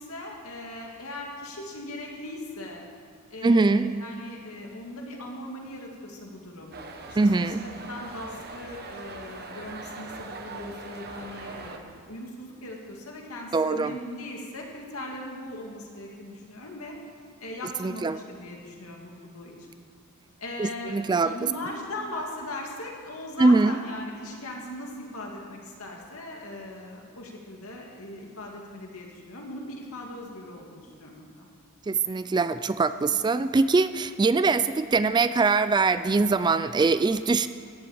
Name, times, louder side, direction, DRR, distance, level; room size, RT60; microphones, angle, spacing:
voice 1, 0.0-2.8 3.3-6.7 7.1-7.3 7.6-17.0 17.4-19.5 20.4-21.0 21.2-31.5, left 1 dB, 75° left, -1 dB, 2.6 m, -39 dB
voice 2, 3.4-4.0 7.2-7.7 13.5-14.0 17.8-18.2 20.6-21.5 23.4-23.8 31.9-37.5, right 3 dB, 20° right, 12 dB, 0.3 m, -23 dB
sound 1, 6.7-11.8, right 3 dB, 45° right, 1.1 m, -41 dB
14.5 x 7.7 x 8.6 m, 2.3 s
head